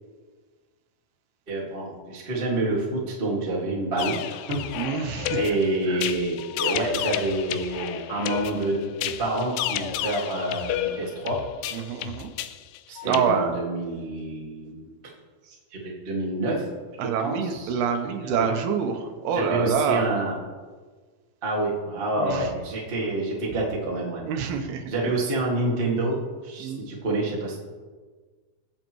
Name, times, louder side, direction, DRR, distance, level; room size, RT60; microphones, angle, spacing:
voice 1, 1.5-4.8 5.3-11.4 12.9-14.9 15.5-16.7 17.0-17.8 18.4-18.5 19.3-20.3 21.4-24.2 24.9-26.2 26.4-27.6, right 2 dB, 30° right, -4 dB, 1.0 m, -28 dB
sound 1, 4.0-13.2, left 12 dB, 90° left, 2.0 m, -32 dB
voice 2, 4.7-5.4 5.9-6.0 11.7-12.3 13.1-13.6 17.0-20.1 22.2-22.5 24.3-25.2 26.6-26.9, right 6 dB, 80° right, 5 dB, 2.8 m, -26 dB
22.0 x 7.9 x 3.1 m, 1.4 s
omnidirectional pair, 4.6 m